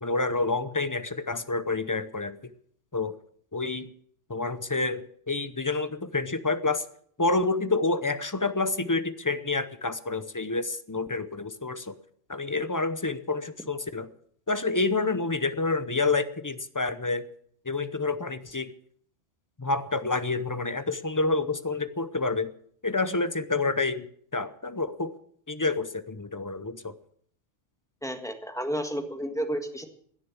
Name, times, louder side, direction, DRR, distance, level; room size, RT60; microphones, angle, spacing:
voice 1, 0.0-2.5 2.9-3.2 3.5-3.9 4.3-6.9 7.2-12.0 12.3-14.1 14.5-17.3 17.6-18.7 19.6-22.5 22.8-24.1 24.3-25.1 25.5-26.9, left 3 dB, 20° left, 12 dB, 0.6 m, -28 dB
voice 2, 28.0-29.9, equal, 5° left, 5 dB, 1.6 m, -31 dB
17.0 x 10.0 x 7.2 m, 0.63 s
omnidirectional pair, 1.2 m